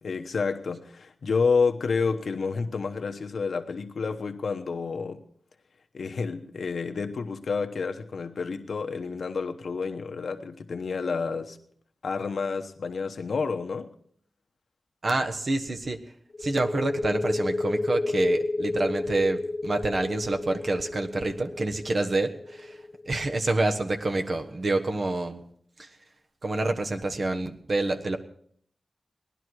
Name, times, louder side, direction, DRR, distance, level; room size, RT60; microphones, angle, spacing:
voice 1, 0.0-5.2 5.9-11.6 12.0-13.9, left 5 dB, 85° left, 6 dB, 1.0 m, -29 dB
voice 2, 15.0-16.0 16.4-25.4 25.8-25.9 26.4-28.2, right 2 dB, 55° right, 6 dB, 1.2 m, -27 dB
sound 1, 16.3-23.8, left 2 dB, 50° left, 1.2 m, -31 dB
18.5 x 11.0 x 4.8 m, 0.63 s
wide cardioid pair, 75°, 0 cm